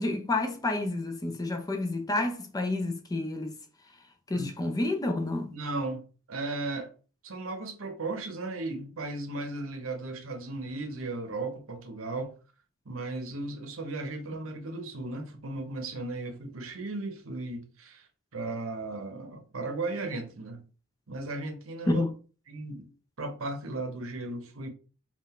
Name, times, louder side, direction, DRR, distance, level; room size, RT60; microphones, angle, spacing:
voice 1, 0.0-3.5 4.3-5.5 21.9-22.1, left 2 dB, 20° left, 0.5 m, -29 dB
voice 2, 5.5-6.9 7.2-12.3 12.9-18.1 18.3-20.6 21.1-22.0 22.5-22.9 23.2-24.7, right 2 dB, 70° right, 0.8 m, -36 dB
3.8 x 2.4 x 4.2 m
head